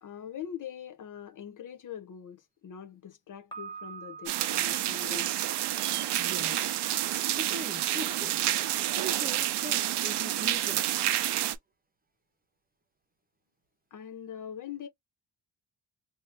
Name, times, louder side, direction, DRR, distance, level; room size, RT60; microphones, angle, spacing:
voice 1, 0.0-5.3 13.9-14.9, left 9 dB, 50° left, 0.5 m, -42 dB
Piano, 3.5-6.4, right 6 dB, 10° left, 1.1 m, -47 dB
sound 1, 4.3-11.6, right 13 dB, 80° right, 0.5 m, -29 dB
voice 2, 6.2-8.4 8.9-10.9, right 2 dB, 20° right, 0.8 m, -41 dB
2.7 x 2.5 x 3.3 m
wide cardioid pair, 145°, 40 cm